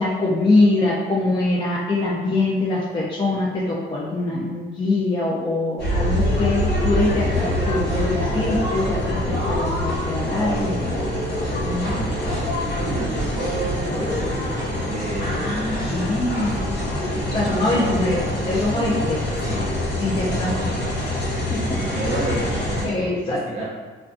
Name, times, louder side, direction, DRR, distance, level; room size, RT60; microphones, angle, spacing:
voice 1, 0.0-11.0 11.5-12.0 15.2-16.8 17.3-19.2 20.0-20.7 21.5-21.6 22.8-23.6, left 2 dB, 25° left, -5 dB, 0.4 m, -23 dB
sound 1, 5.8-22.8, left 1 dB, 65° left, 1.1 m, -25 dB
voice 2, 11.8-14.4 14.9-15.6 16.5-16.8 17.1-18.3 19.4-19.8 20.2-21.2 21.6-23.6, right 2 dB, 35° right, -5 dB, 0.6 m, -31 dB
2.4 x 2.2 x 2.4 m, 1.4 s
cardioid pair, 90°, 20 cm